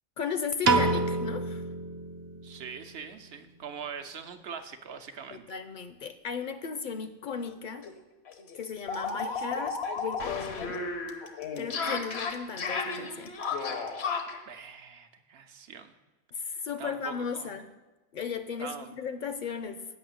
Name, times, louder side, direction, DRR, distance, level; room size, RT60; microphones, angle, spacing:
voice 1, 0.2-1.6 5.3-7.9 8.5-10.8 11.6-13.3 16.3-17.7 18.1-19.8, left 6 dB, 55° left, 10 dB, 0.6 m, -36 dB
Piano, 0.6-2.9, right 3 dB, 35° right, 0.4 m, -28 dB
voice 2, 2.4-5.5 14.5-15.9 16.4-17.5 18.6-18.9, right 6 dB, 75° right, 7 dB, 1.0 m, -43 dB
sound 1, 7.4-7.5 7.8-7.9 8.3-14.4, left 4 dB, 80° left, 1.2 m, -33 dB
8.1 x 5.7 x 7.8 m, 1.2 s
omnidirectional pair, 1.1 m